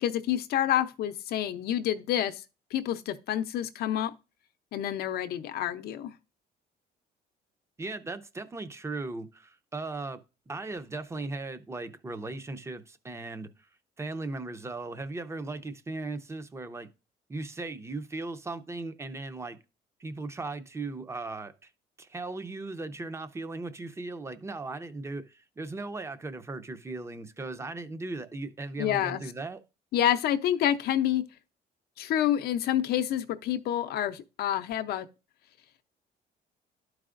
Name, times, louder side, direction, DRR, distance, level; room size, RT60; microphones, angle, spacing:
voice 1, 0.0-2.4 2.7-4.1 4.7-6.1 28.8-29.2 29.9-31.2 32.0-35.1, left 11 dB, 70° left, 0.7 m, -28 dB
voice 2, 7.8-13.7 14.0-16.9 17.3-19.6 20.0-21.7 22.0-29.6, right 3 dB, 15° right, 0.6 m, -37 dB
12.0 x 4.7 x 2.5 m
cardioid pair, 110°, 17 cm